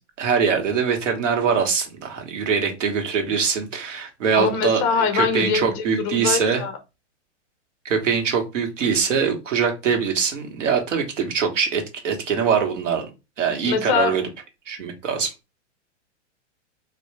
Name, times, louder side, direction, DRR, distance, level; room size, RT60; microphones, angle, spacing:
voice 1, 0.2-6.6 7.8-13.1 13.4-14.2 14.7-15.3, right 6 dB, 85° right, 1.3 m, -23 dB
voice 2, 4.4-6.7 13.7-14.2, left 6 dB, 20° left, 0.4 m, -23 dB
3.4 x 2.4 x 3.1 m
hypercardioid pair, 150°, 36 cm